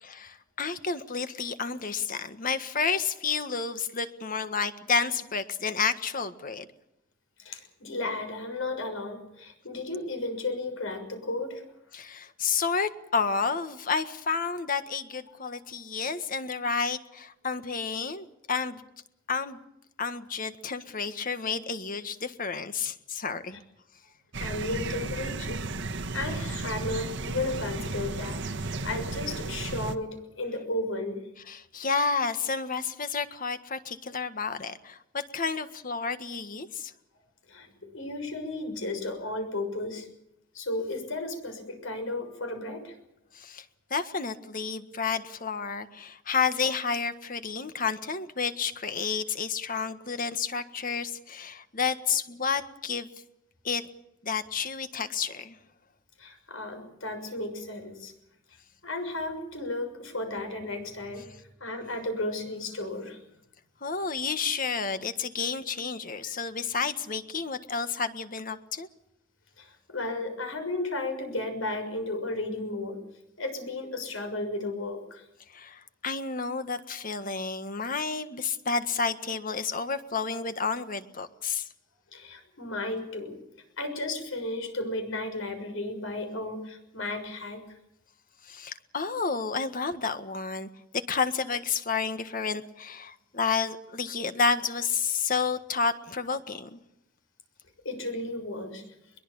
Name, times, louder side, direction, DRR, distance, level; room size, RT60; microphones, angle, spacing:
voice 1, 0.0-6.6 11.9-18.8 19.3-19.6 20.0-23.6 31.5-36.9 43.3-43.6 43.9-53.1 53.6-53.9 54.2-55.6 63.8-68.9 75.5-81.7 88.4-96.8, left 5 dB, 45° left, 10 dB, 1.6 m, -30 dB
voice 2, 7.4-11.6 24.4-25.6 26.1-31.2 37.5-37.7 37.9-40.1 40.5-42.9 56.2-58.1 58.8-61.3 61.6-63.2 66.2-66.3 69.6-73.0 73.4-75.2 82.1-83.4 83.8-87.6 97.8-98.8, left 2 dB, 80° left, 6 dB, 6.4 m, -34 dB
sound 1, 24.3-30.0, right 3 dB, 65° right, 1.4 m, -34 dB
22.5 x 22.5 x 7.1 m, 0.84 s
head